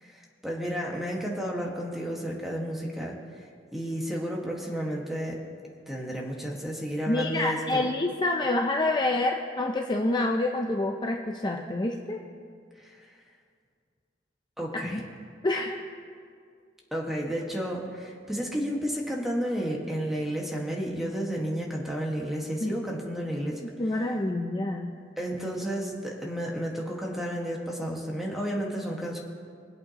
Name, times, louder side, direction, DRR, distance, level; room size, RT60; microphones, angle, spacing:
voice 1, 0.0-3.2 3.7-5.4 5.9-7.9 12.8-13.1 14.6-15.0 16.9-23.6 25.2-29.2, equal, ahead, -2 dB, 1.6 m, -32 dB
voice 2, 7.1-12.2 14.8-15.0 15.4-15.9 22.6-22.7 23.6-24.9, left 2 dB, 25° left, 1 dB, 0.6 m, -27 dB
24.5 x 8.3 x 2.9 m, 2.2 s
head